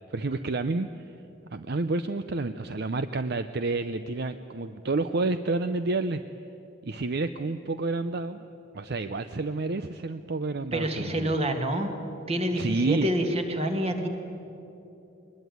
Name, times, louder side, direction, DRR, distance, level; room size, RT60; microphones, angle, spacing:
voice 1, 0.1-1.1 1.5-6.2 6.8-8.4 8.7-11.4 12.5-13.1, right 3 dB, 50° right, 10 dB, 0.6 m, -29 dB
voice 2, 10.7-11.9 12.3-14.1, right 1 dB, 30° right, 5 dB, 2.0 m, -27 dB
22.5 x 20.5 x 9.3 m, 2.9 s
head